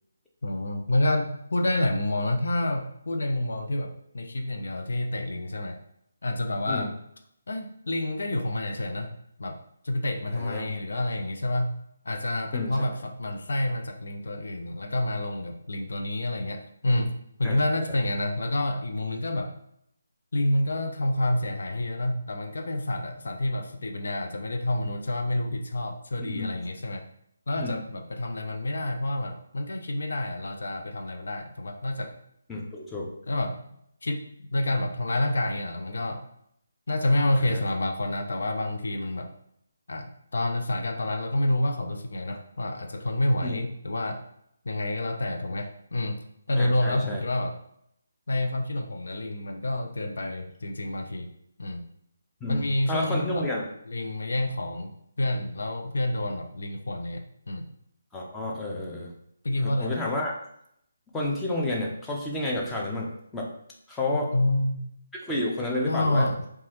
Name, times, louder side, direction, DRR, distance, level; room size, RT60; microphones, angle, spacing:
voice 1, 0.4-5.8 6.2-6.9 7.5-9.1 9.4-17.1 17.4-19.5 20.3-27.1 27.5-32.2 33.3-33.6 34.0-36.2 36.9-39.3 39.9-44.2 44.6-46.2 46.5-47.6 48.3-51.3 51.6-51.9 52.5-53.5 53.9-57.7 59.4-60.0 64.1-64.9 65.9-66.5, left 1 dB, 75° left, 5 dB, 0.5 m, -28 dB
voice 2, 10.3-10.7 12.5-12.8 17.4-17.6 26.2-26.5 27.6-27.8 32.5-33.1 37.4-37.6 43.4-43.6 46.6-47.2 52.4-53.7 58.1-59.1 59.6-60.3 61.1-63.5 63.9-64.3 65.3-66.3, left 1 dB, 10° left, -2 dB, 0.5 m, -30 dB
3.0 x 2.3 x 2.9 m, 0.71 s
figure-of-eight pair, 155°, 0 cm